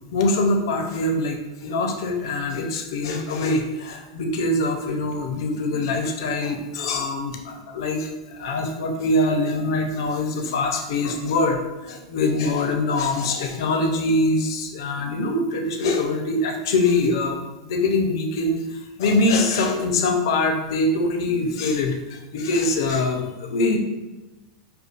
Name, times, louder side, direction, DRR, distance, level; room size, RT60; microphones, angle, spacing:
voice 1, 0.0-23.8, left 2 dB, 75° left, 3 dB, 0.5 m, -23 dB
5.2 x 2.3 x 2.4 m, 1.1 s
hypercardioid pair, 105°, 2 cm